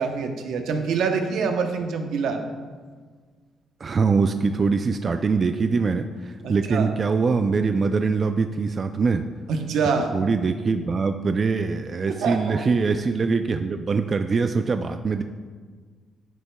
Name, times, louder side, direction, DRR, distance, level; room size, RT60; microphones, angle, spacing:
voice 1, 0.0-2.4 6.4-6.9 9.5-10.2 12.1-12.6, right 5 dB, 80° right, 5 dB, 0.8 m, -25 dB
voice 2, 3.8-9.2 10.1-15.2, right 4 dB, 40° right, 8 dB, 0.3 m, -23 dB
10.5 x 6.9 x 2.2 m, 1.5 s
cardioid pair, 90°, 0 cm